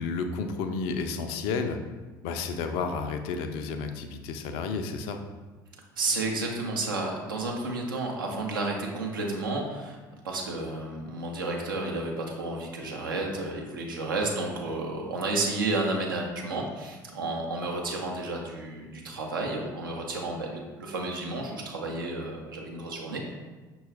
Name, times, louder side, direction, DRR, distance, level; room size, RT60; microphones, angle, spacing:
voice 1, 0.0-1.8 2.2-5.2, left 4 dB, 55° left, 7 dB, 0.4 m, -31 dB
voice 2, 6.0-10.0 10.2-23.4, right 2 dB, 75° right, 0 dB, 0.6 m, -31 dB
5.8 x 2.3 x 3.2 m, 1.3 s
figure-of-eight pair, 60°, 11 cm